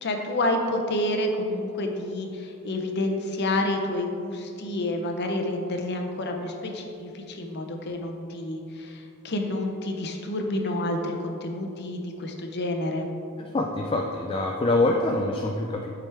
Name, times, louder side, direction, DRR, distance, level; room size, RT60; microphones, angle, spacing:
voice 1, 0.0-13.1, left 1 dB, 50° left, 4 dB, 0.7 m, -29 dB
voice 2, 13.4-15.9, left 2 dB, 25° left, 1 dB, 0.3 m, -25 dB
8.6 x 4.9 x 3.4 m, 2.6 s
head